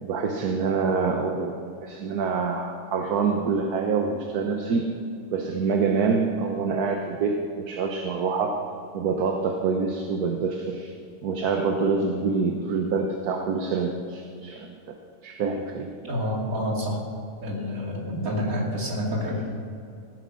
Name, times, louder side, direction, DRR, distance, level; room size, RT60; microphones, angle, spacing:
voice 1, 0.0-4.9 5.3-8.6 8.9-10.9 11.2-15.0 15.2-15.9, right 5 dB, 80° right, 3 dB, 1.5 m, -26 dB
voice 2, 16.0-17.0 17.4-19.4, equal, 65° right, -2 dB, 2.9 m, -28 dB
15.0 x 9.7 x 6.3 m, 2.5 s
omnidirectional pair, 1.6 m